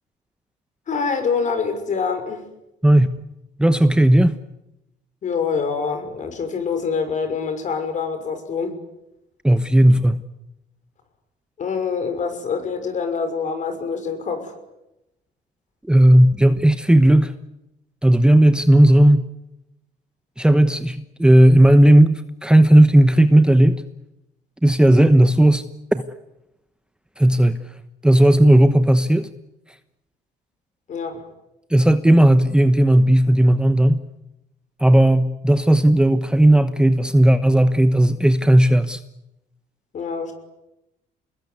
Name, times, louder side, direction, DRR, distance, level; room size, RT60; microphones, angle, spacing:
voice 1, 0.9-2.5 5.2-8.8 11.6-14.5 30.9-31.3 39.9-40.3, left 5 dB, 45° left, 8 dB, 6.0 m, -25 dB
voice 2, 3.6-4.4 9.4-10.2 15.9-17.3 18.0-19.3 20.4-23.8 24.6-25.7 25.9-26.0 27.2-27.6 28.0-29.3 31.7-34.0 34.8-39.0, right 1 dB, 5° right, 10 dB, 1.1 m, -14 dB
27.0 x 20.5 x 9.7 m, 0.90 s
cardioid pair, 110°, 17 cm